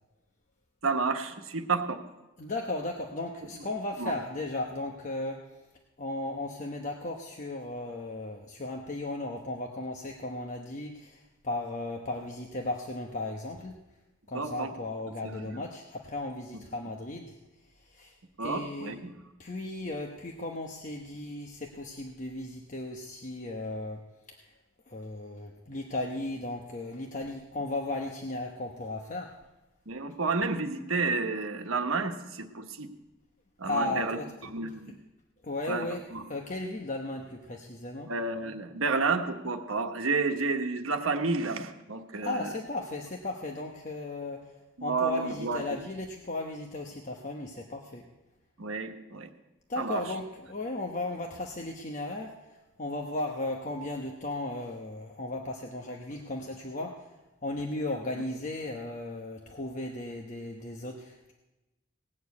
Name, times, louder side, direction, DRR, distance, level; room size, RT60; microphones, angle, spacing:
voice 1, 0.8-2.0 4.0-4.1 14.3-14.7 15.2-15.5 18.4-19.2 29.9-32.9 33.6-35.0 35.7-36.2 38.1-42.5 44.8-45.8 48.6-49.3 49.8-50.0, right 4 dB, 85° right, 6 dB, 1.2 m, -31 dB
voice 2, 2.4-5.4 6.0-13.8 14.3-17.4 17.8-18.1 18.4-19.0 19.4-24.0 24.4-24.5 24.9-29.3 33.6-34.3 35.4-36.0 36.3-38.1 42.2-44.5 44.8-48.1 49.7-57.1 57.4-61.3, left 2 dB, 40° left, 1 dB, 1.0 m, -36 dB
18.0 x 6.9 x 8.3 m, 1.0 s
head